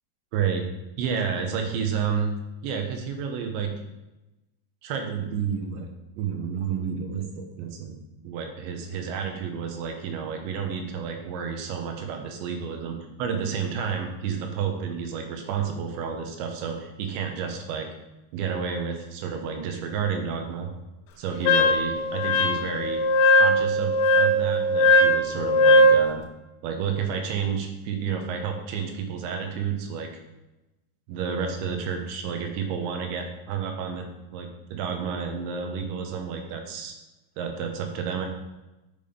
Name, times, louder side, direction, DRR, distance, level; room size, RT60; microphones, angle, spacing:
voice 1, 0.3-0.7 1.0-2.3 2.6-3.7 4.8-5.9 6.2-8.0 8.2-17.9 18.3-20.7 21.2-23.0 23.3-26.2 26.6-30.1 31.1-34.1 34.3-36.9 37.4-38.3, right 6 dB, 75° right, 3 dB, 3.2 m, -30 dB
Wind instrument woodwind instrument, 21.4-26.0, left 1 dB, 75° left, 2.5 m, -19 dB
7.4 x 6.9 x 5.1 m, 1.0 s
omnidirectional pair, 5.4 m